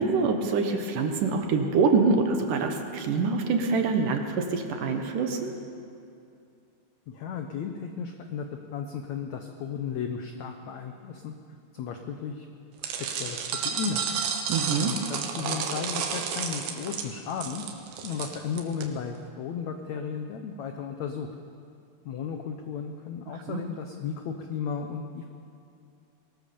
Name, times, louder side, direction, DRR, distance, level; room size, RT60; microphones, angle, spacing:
voice 1, 0.0-5.5 14.5-14.9 23.5-23.6, right 4 dB, 65° right, 5 dB, 2.5 m, -25 dB
voice 2, 7.1-8.5 8.7-11.3 11.7-12.5 12.8-14.0 14.8-17.6 18.0-21.3 22.0-25.3, left 6 dB, 90° left, 5 dB, 1.5 m, -34 dB
sound 1, 12.8-18.9, right 7 dB, 85° right, 3.5 m, -31 dB
21.5 x 18.5 x 7.0 m, 2.5 s
omnidirectional pair, 4.6 m